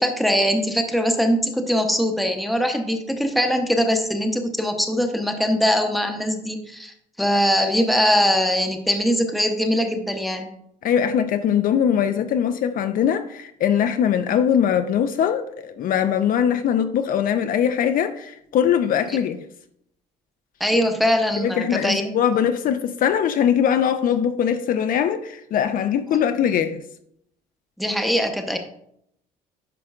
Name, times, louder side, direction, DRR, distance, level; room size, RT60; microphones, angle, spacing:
voice 1, 0.0-10.5 19.1-19.2 20.6-22.1 27.8-28.6, equal, ahead, 0.8 m, -22 dB
voice 2, 10.8-19.4 21.4-26.8, left 8 dB, 55° left, 0.5 m, -21 dB
10.5 x 5.0 x 2.4 m
cardioid pair, 110°, 17 cm